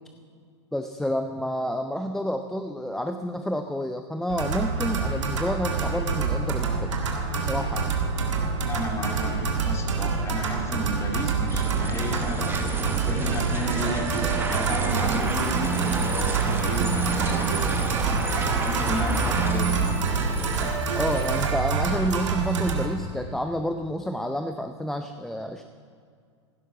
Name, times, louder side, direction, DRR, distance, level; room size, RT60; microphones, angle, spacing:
voice 1, 0.7-6.9 7.4-7.9 20.9-25.6, equal, 5° left, 6 dB, 0.5 m, -29 dB
sound 1, 4.3-22.9, right 4 dB, 80° right, 1.8 m, -26 dB
voice 2, 8.6-17.8 18.6-20.0, equal, 20° left, 1 dB, 2.2 m, -33 dB
sound 2, 11.5-21.4, right 3 dB, 15° right, 1.3 m, -31 dB
sound 3, 14.9-21.5, left 7 dB, 85° left, 0.9 m, -42 dB
15.5 x 12.0 x 4.9 m, 2.2 s
hypercardioid pair, 105°, 15 cm